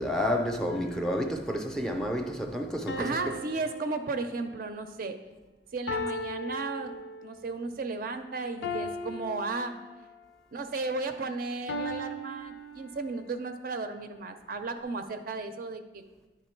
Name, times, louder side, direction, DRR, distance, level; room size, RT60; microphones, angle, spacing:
voice 1, 0.0-3.3, equal, 5° left, 0.5 m, -30 dB
sound 1, 0.7-1.5 2.9-4.7 5.9-7.5 8.6-10.3 11.7-13.3, left 1 dB, 80° left, 0.5 m, -38 dB
voice 2, 3.0-5.1 5.7-9.7 10.5-16.0, right 3 dB, 50° right, 0.4 m, -34 dB
10.0 x 3.5 x 4.4 m
head